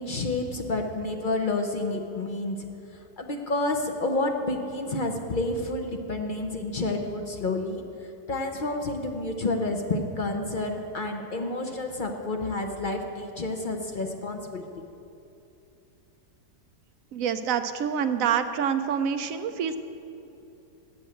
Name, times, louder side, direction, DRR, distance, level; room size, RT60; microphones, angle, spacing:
voice 1, 0.0-2.7 3.2-7.8 8.3-14.7, left 2 dB, 60° left, 3 dB, 0.5 m, -29 dB
voice 2, 17.1-19.8, right 7 dB, 75° right, 9 dB, 0.8 m, -26 dB
8.6 x 8.5 x 7.7 m, 2.9 s
omnidirectional pair, 1.9 m